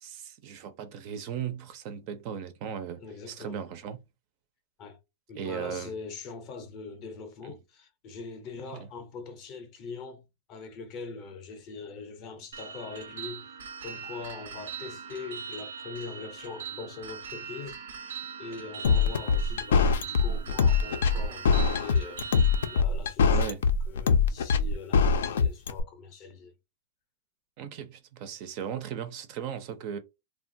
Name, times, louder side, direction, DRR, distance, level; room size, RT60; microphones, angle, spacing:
voice 1, 0.0-3.0 3.3-4.0 5.3-5.9 7.4-7.6 8.6-8.9 23.3-23.6 27.6-30.0, right 8 dB, 35° right, 0.4 m, -37 dB
voice 2, 3.0-3.6 4.8-5.0 5.3-10.2 10.5-23.6 23.9-26.5, left 4 dB, 30° left, 0.5 m, -42 dB
sound 1, 12.5-22.8, right 7 dB, 90° right, 0.7 m, -41 dB
sound 2, 18.8-25.8, left 5 dB, 85° left, 0.4 m, -23 dB
3.1 x 2.2 x 2.5 m
supercardioid pair, 170°, 0 cm